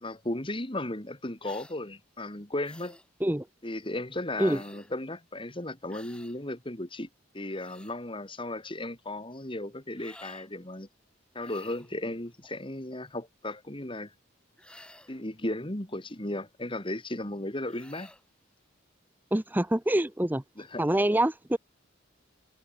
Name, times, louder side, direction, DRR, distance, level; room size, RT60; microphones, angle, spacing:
voice 1, 0.0-3.0 3.6-7.1 7.3-10.9 11.3-14.1 15.1-18.1 20.6-20.8, left 1 dB, 25° left, 2.9 m, -35 dB
sound 1, 1.4-1.8 2.6-3.1 4.4-4.9 5.9-6.4 7.3-8.0 10.0-10.5 11.4-11.9 14.6-15.2 17.6-18.2, left 1 dB, 5° left, 5.5 m, -52 dB
voice 2, 19.3-20.4 20.8-21.6, right 1 dB, 10° right, 0.8 m, -25 dB
head